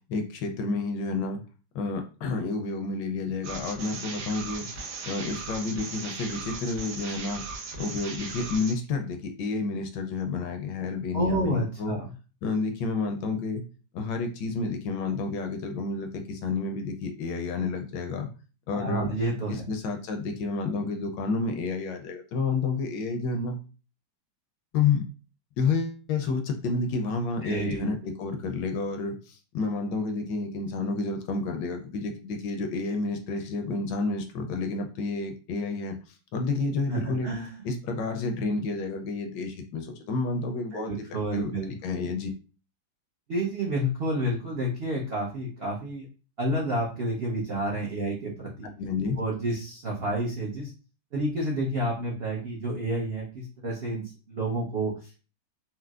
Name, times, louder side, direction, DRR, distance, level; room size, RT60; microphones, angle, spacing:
voice 1, 0.1-1.4 1.7-4.7 5.1-7.4 7.8-12.0 12.4-13.6 13.9-18.3 18.7-19.1 19.5-23.6 24.7-25.0 25.6-36.0 36.3-37.3 37.6-42.3 48.8-49.2, left 4 dB, 75° left, 5 dB, 1.2 m, -30 dB
sound 1, 3.4-8.7, right 4 dB, 85° right, 1.5 m, -38 dB
voice 2, 11.1-12.1 18.7-19.6 27.4-27.9 36.9-37.6 40.7-42.0 43.3-46.1 46.4-48.7 49.2-50.7 51.1-55.2, right 1 dB, 70° right, -3 dB, 0.5 m, -30 dB
4.3 x 2.0 x 2.3 m, 0.34 s
omnidirectional pair, 2.0 m